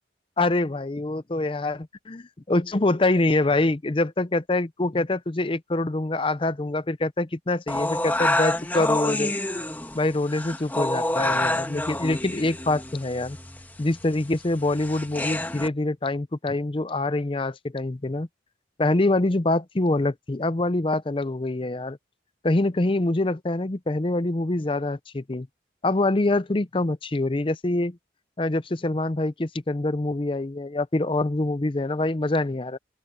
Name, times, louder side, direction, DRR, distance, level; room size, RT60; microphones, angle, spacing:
voice 1, 0.4-9.3 9.9-13.4 13.8-18.3 18.8-22.0 22.4-25.5 25.8-28.0 28.4-32.8, left 2 dB, 30° left, 0.6 m, -25 dB
sound 1, 7.7-15.7, left 1 dB, 10° left, 1.4 m, -28 dB
open air
head